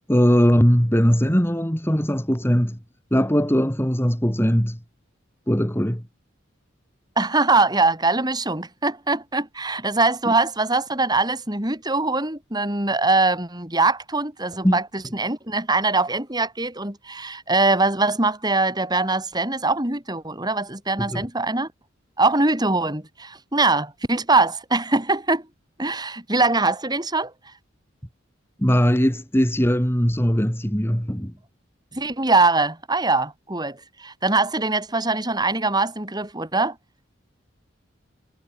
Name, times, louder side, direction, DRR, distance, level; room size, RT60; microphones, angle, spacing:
voice 1, 0.1-2.8 3.1-4.8 5.5-6.0 10.2-10.3 14.6-14.8 21.0-21.3 28.6-31.3, equal, 10° left, 3.2 m, -20 dB
voice 2, 7.2-21.7 22.2-25.4 25.8-27.3 31.9-36.7, right 3 dB, 20° right, 4.8 m, -22 dB
head